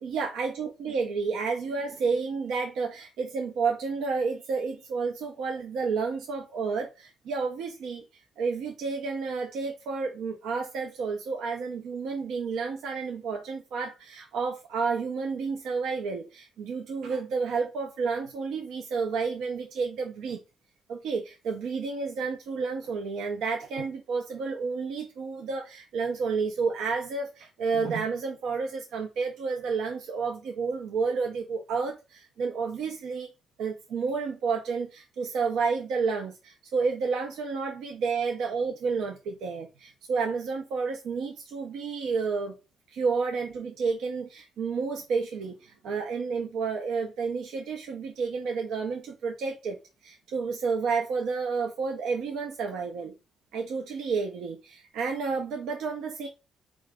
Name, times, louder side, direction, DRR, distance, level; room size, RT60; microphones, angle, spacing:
voice 1, 0.0-8.0 8.4-20.4 20.9-33.3 33.6-42.6 42.9-53.1 53.5-56.3, right 5 dB, 80° right, 0.5 m, -30 dB
3.8 x 2.4 x 3.3 m
cardioid pair, 90°, 0 cm